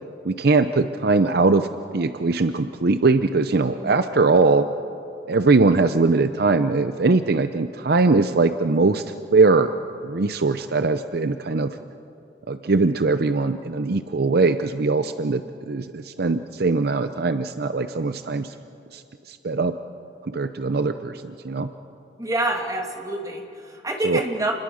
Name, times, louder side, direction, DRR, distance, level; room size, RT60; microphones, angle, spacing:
voice 1, 0.2-1.7 1.9-4.7 5.3-9.0 9.3-9.7 10.0-11.7 12.5-18.5 18.9-19.0 19.3-19.8 20.2-21.7 24.0-24.2, right 3 dB, 60° right, 10 dB, 0.7 m, -21 dB
voice 2, 3.6-4.1 22.2-24.5, right 1 dB, 20° right, 1 dB, 2.6 m, -27 dB
29.5 x 21.5 x 6.4 m, 2.6 s
head